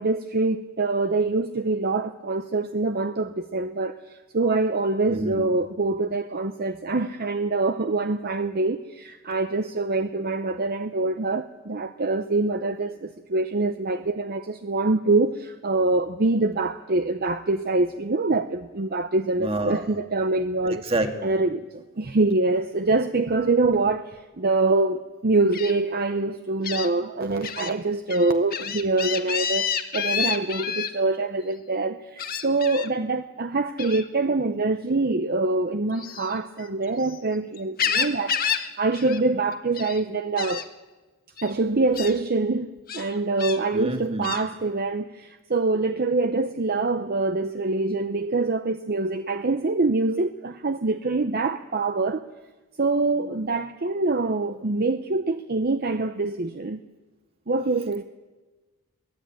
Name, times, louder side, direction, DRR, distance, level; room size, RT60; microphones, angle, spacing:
voice 1, 0.0-20.8 21.2-38.4 38.8-40.7 41.4-52.2 52.8-56.8 57.5-58.0, right 3 dB, 45° right, 0.7 m, -25 dB
voice 2, 5.1-5.5 19.4-20.0 20.6-21.3 43.7-44.4, right 1 dB, 25° right, 1.9 m, -28 dB
Gull seagull, 25.5-25.7 26.6-26.9 27.4-27.7 28.1-30.9 32.2-32.9 33.8-34.1 35.9-37.2 37.5-38.7 38.9-39.2 39.5-40.0 40.4-40.6 41.4-41.5 41.9-42.1 42.9-43.6 44.2-44.4, left 8 dB, 40° left, 1.4 m, -29 dB
23.0 x 18.0 x 9.0 m
head